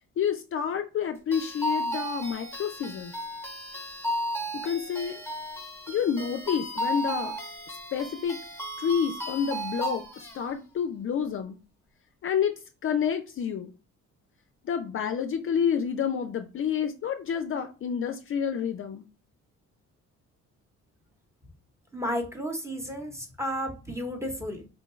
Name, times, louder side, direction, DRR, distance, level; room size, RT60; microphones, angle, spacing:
voice 1, 0.2-3.1 4.5-5.2 5.9-7.4 7.7-8.4 8.8-11.6 12.2-12.5 12.8-13.7 14.6-19.0, left 7 dB, 45° left, 8 dB, 0.4 m, -29 dB
sound 1, 1.3-10.4, equal, 10° left, 1.1 m, -34 dB
voice 2, 21.9-24.7, equal, 10° right, 2 dB, 0.9 m, -32 dB
4.4 x 2.2 x 3.1 m, 0.33 s
cardioid pair, 90°, 30 cm